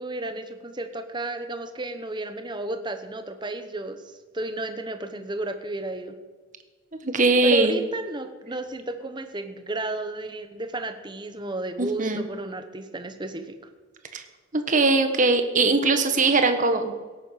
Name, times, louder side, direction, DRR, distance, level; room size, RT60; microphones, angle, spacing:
voice 1, 0.0-4.0 4.3-6.2 7.4-13.5, right 2 dB, 20° right, 7 dB, 1.1 m, -33 dB
voice 2, 7.0-7.7 11.8-12.3 14.1-14.2 14.5-16.9, right 3 dB, 40° right, 7 dB, 1.4 m, -21 dB
17.0 x 9.3 x 6.5 m, 1.4 s
head